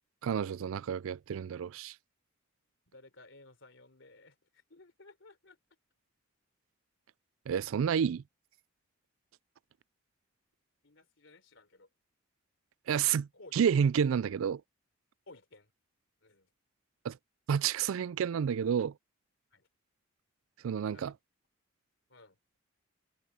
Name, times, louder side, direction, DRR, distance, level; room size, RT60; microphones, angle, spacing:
voice 1, 0.2-1.9 7.5-8.2 12.9-14.6 17.0-17.2 17.5-18.9 20.6-21.1, right 7 dB, 75° right, 0.3 m, -30 dB
voice 2, 2.9-5.6 10.8-11.9 13.3-13.6 15.3-15.7 16.2-16.5 19.5-19.7 20.9-21.2 22.1-22.4, left 2 dB, 65° left, 3.6 m, -56 dB
head